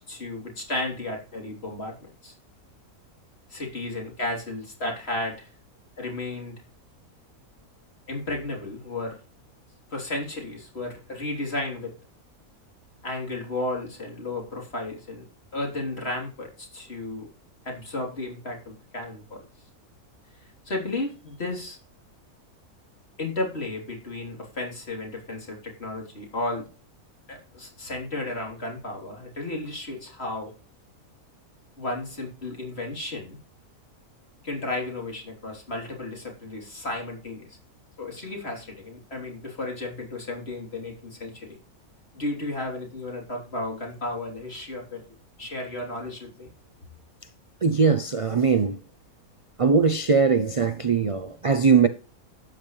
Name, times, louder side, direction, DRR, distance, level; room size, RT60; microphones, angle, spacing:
voice 1, 0.1-2.3 3.5-5.5 6.0-6.6 8.1-9.2 9.9-11.9 13.0-15.2 15.5-17.3 17.6-19.4 20.7-21.8 23.2-26.7 27.3-30.5 31.8-33.4 34.4-37.6 38.0-41.6 42.1-45.0 45.4-46.5, left 2 dB, 45° left, 3.6 m, -33 dB
voice 2, 47.6-48.8 49.6-51.9, right 5 dB, 50° right, 0.4 m, -20 dB
12.0 x 9.3 x 3.2 m
omnidirectional pair, 1.6 m